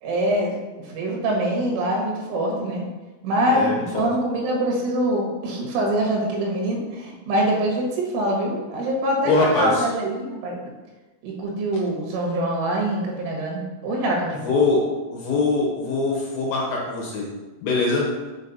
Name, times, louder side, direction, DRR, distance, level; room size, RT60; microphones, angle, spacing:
voice 1, 0.0-2.8 3.2-10.6 11.2-14.5, right 1 dB, 90° right, -1 dB, 4.1 m, -24 dB
voice 2, 3.5-4.1 9.3-9.8 14.4-14.8 15.1-17.3 17.6-18.1, left 3 dB, 70° left, -3 dB, 2.5 m, -22 dB
7.2 x 5.2 x 4.1 m, 1.2 s
omnidirectional pair, 5.5 m